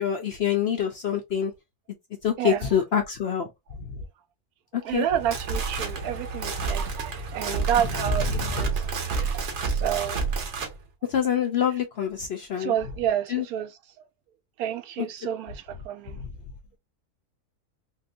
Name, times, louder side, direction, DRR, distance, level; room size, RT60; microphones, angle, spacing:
voice 1, 0.0-1.5 2.2-3.5 4.7-5.1 8.3-8.7 11.1-12.8 13.3-13.5 15.0-15.1, left 8 dB, 60° left, 0.7 m, -26 dB
voice 2, 4.8-10.2 12.5-13.7 14.6-16.2, right 10 dB, 75° right, 1.1 m, -29 dB
sound 1, 5.1-10.7, right 4 dB, 55° right, 1.1 m, -29 dB
3.6 x 2.6 x 2.5 m
omnidirectional pair, 1.6 m